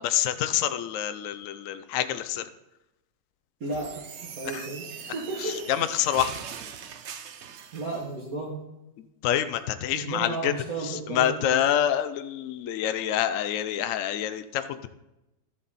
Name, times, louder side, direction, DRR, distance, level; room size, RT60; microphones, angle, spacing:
voice 1, 0.0-2.4 5.8-6.3 9.2-10.5 10.9-14.9, left 11 dB, 80° left, 11 dB, 0.7 m, -27 dB
voice 2, 3.6-5.7 7.7-8.6 9.9-11.6, right 3 dB, 50° right, -4 dB, 2.0 m, -34 dB
sound 1, 3.6-8.1, right 8 dB, 65° right, 0.6 m, -41 dB
12.0 x 7.5 x 4.1 m, 0.92 s
omnidirectional pair, 2.0 m